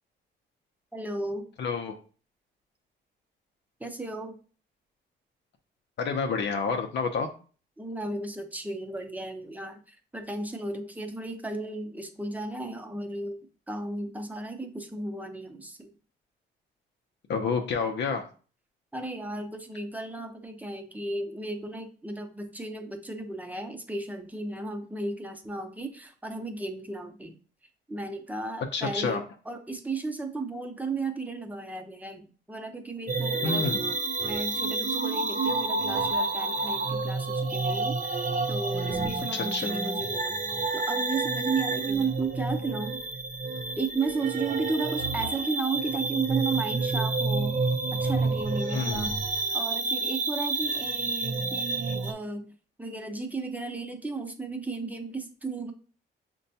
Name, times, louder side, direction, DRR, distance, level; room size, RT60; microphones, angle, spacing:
voice 1, 0.9-1.5 3.8-4.4 7.8-13.4 13.7-15.9 18.9-27.3 27.9-33.7 34.2-40.4 40.7-43.0 43.8-47.6 47.9-49.2 49.5-52.5 52.8-55.7, right 3 dB, 10° right, 5 dB, 0.8 m, -34 dB
voice 2, 1.6-2.0 6.0-7.3 17.3-18.2 28.7-29.2 33.4-33.8 39.3-39.8 48.7-49.1, left 5 dB, 60° left, 4 dB, 0.6 m, -29 dB
sound 1, 33.1-52.1, right 3 dB, 40° right, 0.6 m, -29 dB
6.3 x 2.2 x 2.7 m, 0.39 s
cardioid pair, 90°, 20 cm